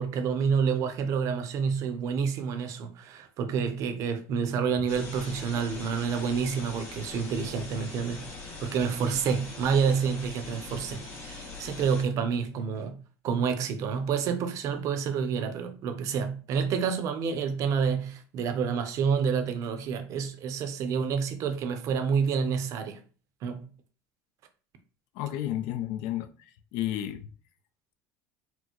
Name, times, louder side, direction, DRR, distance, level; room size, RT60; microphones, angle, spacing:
voice 1, 0.0-8.3 8.6-13.0 13.2-23.0 23.4-23.7, right 6 dB, 50° right, 0.5 m, -28 dB
sound 1, 4.9-12.0, left 3 dB, 35° left, 1.5 m, -42 dB
voice 2, 25.2-26.3 26.7-27.3, left 12 dB, 75° left, 0.4 m, -31 dB
4.3 x 2.0 x 2.9 m
cardioid pair, 135°, 7 cm